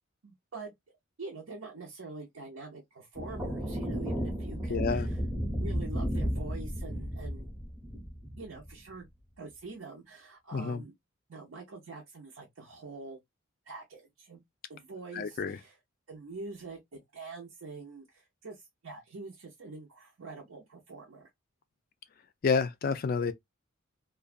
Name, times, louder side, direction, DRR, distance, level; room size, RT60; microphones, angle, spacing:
voice 1, 0.2-0.7 1.2-5.2 5.5-7.5 8.4-9.1 9.4-10.9 11.3-13.2 13.7-14.4 14.7-15.8 16.1-21.3, right 3 dB, 85° right, 0.7 m, -45 dB
sound 1, 3.2-8.8, equal, 10° right, 0.7 m, -33 dB
voice 2, 4.7-5.1 10.5-10.8 15.1-15.6 22.4-23.3, left 5 dB, 45° left, 0.3 m, -29 dB
2.5 x 2.2 x 2.4 m
head